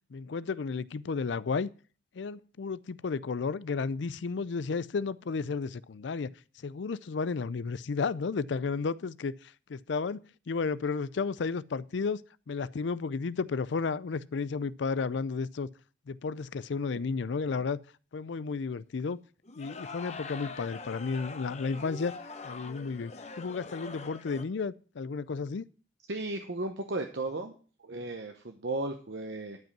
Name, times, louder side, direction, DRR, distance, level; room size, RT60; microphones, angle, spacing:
voice 1, 0.1-1.7 2.1-6.3 6.6-15.7 16.1-17.8 18.1-19.2 19.6-22.1 22.4-25.6, left 4 dB, 70° left, 0.4 m, -33 dB
sound 1, 19.4-24.4, left 4 dB, 35° left, 0.9 m, -43 dB
voice 2, 26.1-27.5 27.8-29.6, right 2 dB, 65° right, 0.9 m, -35 dB
12.0 x 5.4 x 7.3 m
head